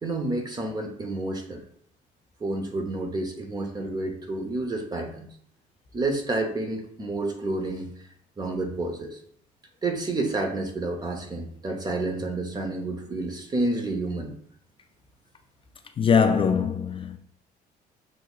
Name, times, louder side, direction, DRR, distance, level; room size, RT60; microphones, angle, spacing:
voice 1, 0.0-1.6 2.4-5.3 5.9-7.9 8.4-9.2 9.8-14.3, right 2 dB, 25° right, 0.9 m, -29 dB
voice 2, 16.0-17.2, left 6 dB, 30° left, 0.4 m, -22 dB
6.3 x 3.4 x 2.4 m
cardioid pair, 110°, 17 cm